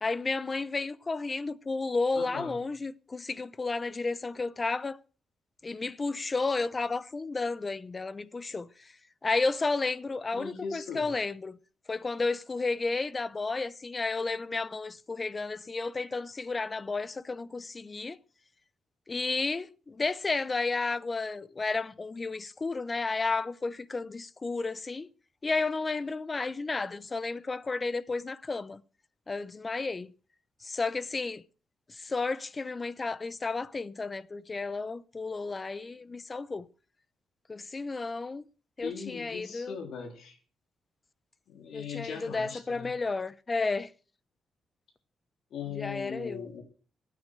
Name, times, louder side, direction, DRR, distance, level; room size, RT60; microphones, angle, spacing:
voice 1, 0.0-5.0 5.6-8.9 9.2-11.6 11.9-18.2 19.1-25.1 25.4-28.8 29.3-30.1 30.6-31.4 31.9-36.7 37.5-38.4 38.8-39.8 41.7-43.9 45.7-46.5, left 3 dB, 25° left, 0.7 m, -32 dB
voice 2, 2.1-2.6 10.3-11.1 38.8-40.4 41.5-43.0 45.5-46.6, left 6 dB, 75° left, 3.8 m, -39 dB
16.5 x 9.3 x 6.7 m
cardioid pair, 140°, 0 cm